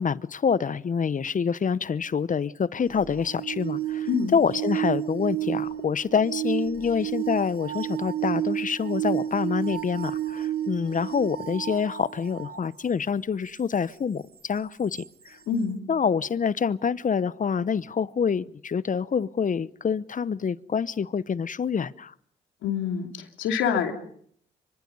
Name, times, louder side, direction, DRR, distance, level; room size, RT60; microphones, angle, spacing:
voice 1, 0.0-15.4 15.9-22.1, left 6 dB, 40° left, 0.9 m, -26 dB
sound 1, 2.9-12.7 15.0-15.1, right 12 dB, 55° right, 1.4 m, -31 dB
voice 2, 15.5-15.8 22.6-23.9, left 7 dB, 80° left, 2.8 m, -26 dB
26.0 x 24.5 x 5.5 m
supercardioid pair, 50°, 20 cm